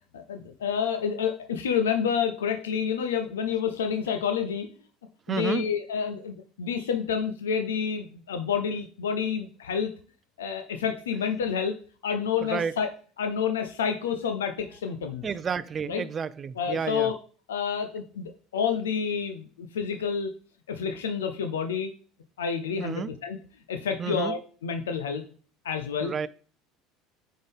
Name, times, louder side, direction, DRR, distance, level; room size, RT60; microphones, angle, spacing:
voice 1, 0.1-4.7 5.3-9.9 10.4-11.8 12.0-12.9 13.2-15.3 15.9-16.0 16.6-17.1 17.5-20.3 20.7-21.9 22.4-23.4 23.7-25.2 25.6-26.1, left 7 dB, 85° left, 0.5 m, -29 dB
voice 2, 5.3-5.6 12.4-12.8 15.2-17.1 22.8-23.1 24.0-24.4 26.0-26.3, right 6 dB, 35° right, 0.4 m, -31 dB
8.8 x 3.7 x 3.5 m
hypercardioid pair, 75°, 0 cm